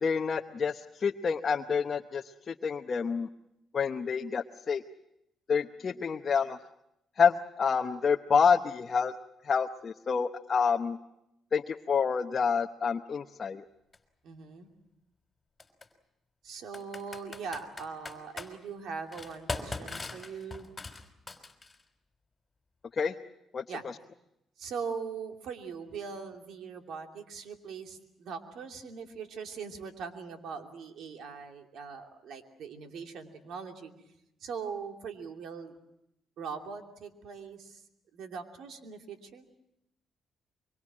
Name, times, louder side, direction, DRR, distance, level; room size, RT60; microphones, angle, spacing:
voice 1, 0.0-3.3 3.7-4.8 5.5-6.6 7.2-9.1 9.4-11.0 11.5-13.6 23.0-23.1 23.5-23.6, left 6 dB, 45° left, 5 dB, 0.9 m, -28 dB
Computer keyboard, 13.9-14.0 15.6-15.9 16.7-18.5 19.1-21.8, left 3 dB, 25° left, 3.4 m, -40 dB
voice 2, 14.2-14.7 16.4-20.7 23.7-23.8 24.6-33.9 34.4-35.7 36.4-37.8 38.1-39.4, right 5 dB, 75° right, 4 dB, 2.8 m, -41 dB
24.5 x 24.0 x 7.5 m, 0.85 s
cardioid pair, 90°, 0 cm